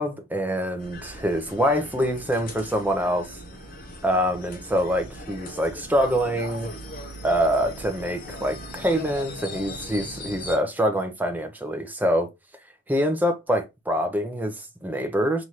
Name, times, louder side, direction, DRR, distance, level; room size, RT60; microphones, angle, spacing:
voice 1, 0.0-3.4 4.0-6.7 7.2-12.3 12.9-15.4, equal, 10° right, 0.6 m, -25 dB
sound 1, 0.8-10.6, left 1 dB, 40° left, 0.9 m, -39 dB
5.6 x 2.6 x 3.1 m
head